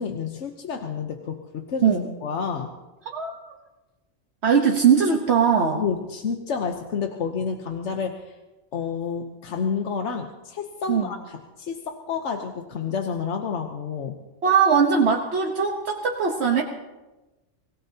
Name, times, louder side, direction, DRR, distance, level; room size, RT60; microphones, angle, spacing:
voice 1, 0.0-1.9 2.2-2.7 5.7-8.4 8.7-14.2, left 6 dB, 90° left, 4 dB, 1.3 m, -29 dB
voice 2, 4.4-5.8 10.9-11.1 14.4-16.6, right 6 dB, 70° right, 0 dB, 1.4 m, -20 dB
25.0 x 17.0 x 2.9 m, 1.1 s
omnidirectional pair, 1.2 m